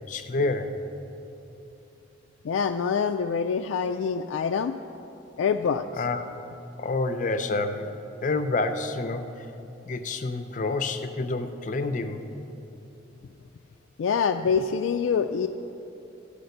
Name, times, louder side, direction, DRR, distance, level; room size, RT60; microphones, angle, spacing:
voice 1, 0.1-0.8 6.0-6.2 6.8-7.9 8.2-9.4 9.9-12.5, left 3 dB, 40° left, 8 dB, 0.5 m, -28 dB
voice 2, 2.4-4.7 5.4-6.0 14.0-15.5, left 6 dB, 85° left, 6 dB, 0.3 m, -25 dB
14.0 x 5.1 x 6.6 m, 3.0 s
head